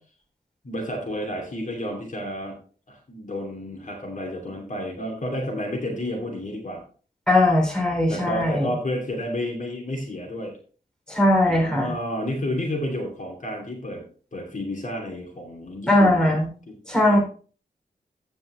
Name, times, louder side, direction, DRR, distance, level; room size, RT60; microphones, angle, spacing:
voice 1, 0.6-2.6 2.9-6.8 8.1-10.6 11.5-14.0 14.3-16.4 16.7-17.2, left 1 dB, 50° left, 0 dB, 2.8 m, -31 dB
voice 2, 7.3-8.7 11.1-11.9 15.9-16.5 16.9-17.2, left 1 dB, 5° left, -2 dB, 3.5 m, -19 dB
16.0 x 5.3 x 3.3 m, 0.40 s
wide cardioid pair, 125°, 17 cm